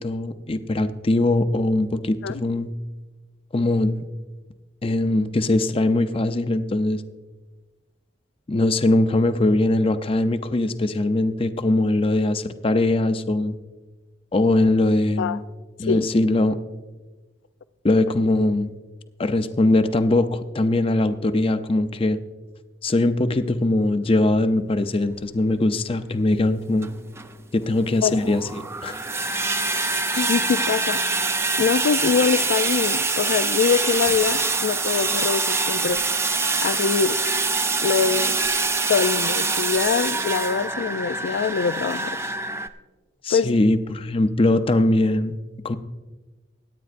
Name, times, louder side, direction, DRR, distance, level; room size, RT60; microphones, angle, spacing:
voice 1, 0.0-2.7 3.5-4.0 4.8-7.0 8.5-13.6 14.3-15.4 15.8-16.6 17.8-18.7 19.2-22.2 22.8-26.9 27.5-29.0 43.2-45.4 45.6-45.8, left 2 dB, 30° left, 10 dB, 0.5 m, -21 dB
sound 1, 24.9-25.0 25.7-25.8 26.7-42.7, right 3 dB, 15° right, 0.5 m, -25 dB
voice 2, 30.1-31.0 31.6-36.0 36.6-37.2 37.8-38.4 38.9-42.2 43.3-43.6, left 6 dB, 80° left, 12 dB, 0.4 m, -23 dB
sound 2, 34.0-34.4 35.9-36.3 37.4-37.9 38.4-39.1 39.7-40.1, right 3 dB, 60° right, 1.4 m, -46 dB
24.0 x 9.1 x 2.5 m, 1.2 s
head